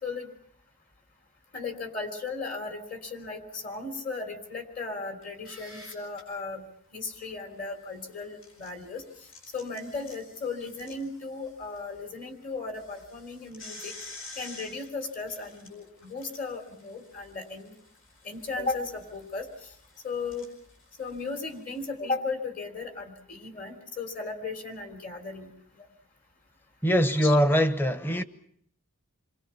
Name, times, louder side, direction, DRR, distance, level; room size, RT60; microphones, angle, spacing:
voice 1, 1.5-6.6 6.9-9.0 9.5-13.9 14.4-17.7 18.2-19.7 20.0-20.5 21.0-25.5 25.7-25.9 27.1-27.3, left 3 dB, 40° left, 3.2 m, -36 dB
sound 1, 5.2-6.2 8.1-11.8 12.1-12.2 12.7-21.9, left 2 dB, 70° left, 7.4 m, -50 dB
voice 2, 26.8-28.2, equal, 10° left, 0.9 m, -22 dB
28.0 x 22.5 x 5.7 m
head